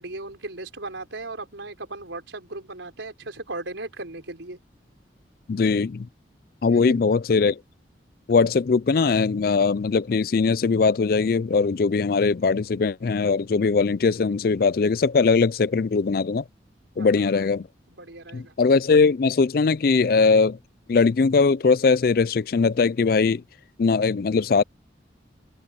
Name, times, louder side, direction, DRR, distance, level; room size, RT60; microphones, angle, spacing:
voice 1, 0.0-4.6 6.7-7.1 17.0-17.4 17.9-18.5, right 2 dB, 85° right, 4.6 m, -37 dB
voice 2, 5.5-6.1 6.6-7.6 8.3-16.4 17.0-17.7 18.3-20.6 20.9-23.4 23.8-24.6, left 4 dB, 50° left, 0.4 m, -20 dB
head